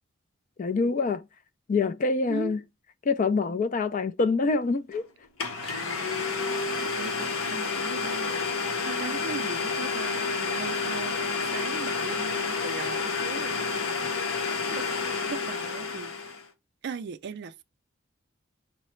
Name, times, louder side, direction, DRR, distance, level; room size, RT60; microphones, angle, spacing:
voice 1, 0.6-1.2 1.7-2.6 3.1-5.1, left 4 dB, 40° left, 0.3 m, -25 dB
Domestic sounds home sounds, 4.9-5.0 5.4-16.5, left 4 dB, 90° left, 0.8 m, -30 dB
voice 2, 7.0-14.3 14.7-14.9 15.3-16.3 16.8-17.6, right 5 dB, 55° right, 0.4 m, -39 dB
5.5 x 2.0 x 4.3 m
head